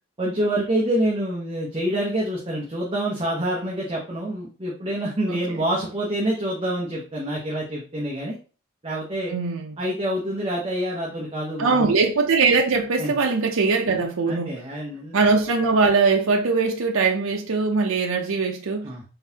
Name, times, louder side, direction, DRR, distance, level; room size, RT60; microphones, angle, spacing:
voice 1, 0.2-8.4 8.8-9.3 9.8-11.9 13.0-13.2 14.3-15.2 18.8-19.0, right 1 dB, 25° right, 0.8 m, -27 dB
voice 2, 9.3-9.7 11.6-14.5 15.1-18.9, right 4 dB, 80° right, 0.6 m, -21 dB
3.8 x 3.5 x 2.8 m
head